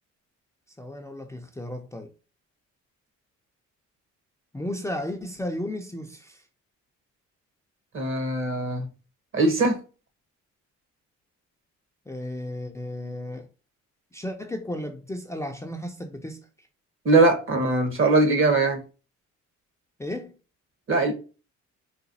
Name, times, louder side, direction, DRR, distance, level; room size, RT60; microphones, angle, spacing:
voice 1, 0.8-2.1 4.5-6.4 12.1-13.5 14.1-16.4 20.0-20.3, left 1 dB, 10° left, 0.4 m, -34 dB
voice 2, 7.9-8.9 9.3-9.8 17.0-18.8 20.9-21.1, right 2 dB, 45° right, 0.9 m, -21 dB
4.0 x 2.2 x 2.6 m
cardioid pair, 90°, 30 cm